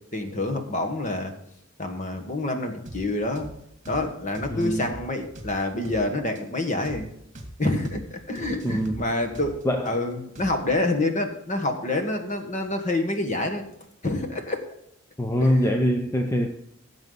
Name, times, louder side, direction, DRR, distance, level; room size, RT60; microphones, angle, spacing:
voice 1, 0.1-1.3 1.8-3.5 3.9-7.1 7.6-13.6 14.0-14.6 15.4-15.5, left 2 dB, 35° left, 5 dB, 1.4 m, -27 dB
sound 1, 2.9-3.0 3.4-3.5 3.9-4.0 4.3-6.0 6.4-6.5 6.8-7.0 7.3-7.5 7.8-8.0 8.4-9.9 10.4-10.8, right 1 dB, 35° right, 2.1 m, -41 dB
voice 2, 4.5-4.9 8.6-9.0 9.6-10.0 15.2-16.5, equal, 15° left, 5 dB, 0.6 m, -23 dB
16.0 x 7.4 x 4.0 m, 0.75 s
head